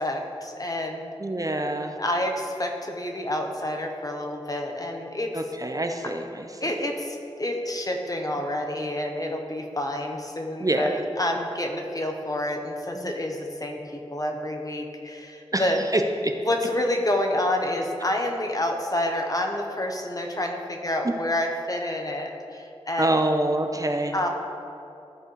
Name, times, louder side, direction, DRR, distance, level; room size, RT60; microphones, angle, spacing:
voice 1, 0.0-1.1 2.0-5.3 6.6-15.8 16.5-23.1 24.1-24.3, left 1 dB, 35° left, 2 dB, 0.8 m, -28 dB
voice 2, 1.2-2.0 5.3-6.6 8.4-8.5 10.6-11.0 12.9-13.1 15.5-16.0 23.0-24.3, right 1 dB, 35° right, 5 dB, 0.5 m, -26 dB
13.5 x 4.5 x 3.1 m, 2.7 s
wide cardioid pair, 65°, 11 cm